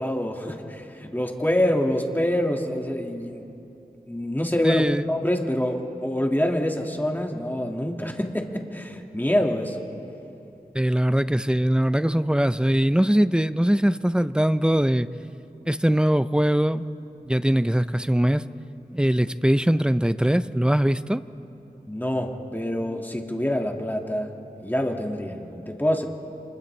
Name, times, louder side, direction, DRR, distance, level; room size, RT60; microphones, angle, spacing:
voice 1, 0.0-3.5 4.1-9.8 21.9-24.3 24.6-26.1, left 1 dB, 10° left, 2 dB, 1.9 m, -26 dB
voice 2, 4.6-5.1 10.7-15.1 15.7-16.8 17.3-18.4 18.9-21.2, equal, 5° right, 13 dB, 0.5 m, -21 dB
29.5 x 27.0 x 3.3 m, 2.9 s
wide cardioid pair, 45°, 15 cm